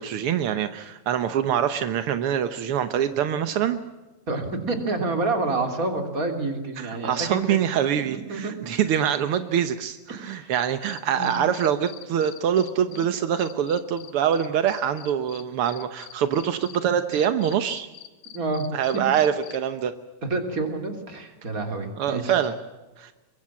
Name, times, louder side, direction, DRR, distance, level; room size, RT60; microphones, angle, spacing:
voice 1, 0.0-3.8 6.8-17.9 18.7-19.9 22.0-22.5 23.0-23.1, right 9 dB, 75° right, 10 dB, 1.3 m, -24 dB
voice 2, 4.3-7.6 8.0-8.6 10.1-10.5 11.1-11.4 12.9-13.1 18.3-18.7 20.2-22.3, right 3 dB, 25° right, 5 dB, 3.4 m, -28 dB
Cricket, 10.2-13.0 13.4-16.8 17.1-19.6, left 13 dB, 85° left, 2.9 m, -44 dB
23.5 x 23.0 x 7.5 m, 1.1 s
omnidirectional pair, 3.8 m